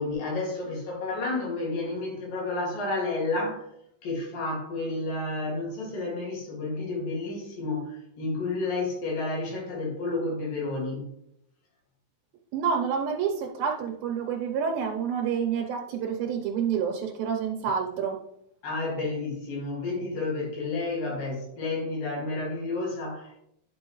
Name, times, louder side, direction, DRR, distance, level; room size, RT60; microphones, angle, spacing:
voice 1, 0.0-3.7 4.0-11.1 18.6-23.4, left 3 dB, 70° left, -2 dB, 3.8 m, -31 dB
voice 2, 12.5-18.2, right 7 dB, 85° right, 1 dB, 2.9 m, -28 dB
11.0 x 5.6 x 3.1 m, 0.74 s
omnidirectional pair, 4.1 m